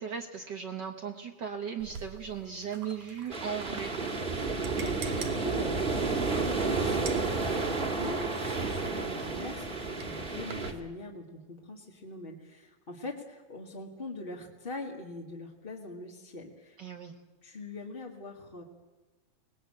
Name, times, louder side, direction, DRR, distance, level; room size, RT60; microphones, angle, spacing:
voice 1, 0.0-3.9 16.8-17.1, right 7 dB, 80° right, 3 dB, 0.9 m, -37 dB
sound 1, 1.8-10.8, right 6 dB, 65° right, 2.6 m, -48 dB
sound 2, 3.3-10.7, right 4 dB, 25° right, 1.5 m, -31 dB
voice 2, 4.4-16.8 17.4-18.6, left 2 dB, 25° left, -1 dB, 1.3 m, -42 dB
24.0 x 19.0 x 8.7 m, 1.2 s
omnidirectional pair, 3.8 m